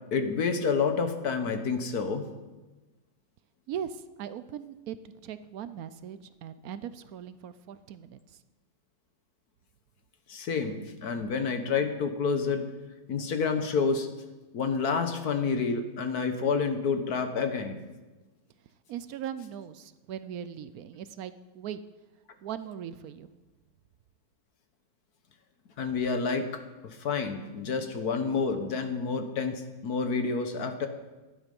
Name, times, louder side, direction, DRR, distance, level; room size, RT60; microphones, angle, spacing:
voice 1, 0.1-2.2 10.3-12.6 13.1-14.1 14.5-17.8 25.8-30.9, left 5 dB, 60° left, 7 dB, 1.5 m, -29 dB
voice 2, 3.7-8.2 18.9-21.8 22.4-23.3, right 9 dB, 70° right, 13 dB, 0.9 m, -39 dB
15.5 x 11.5 x 5.3 m, 1.2 s
omnidirectional pair, 2.0 m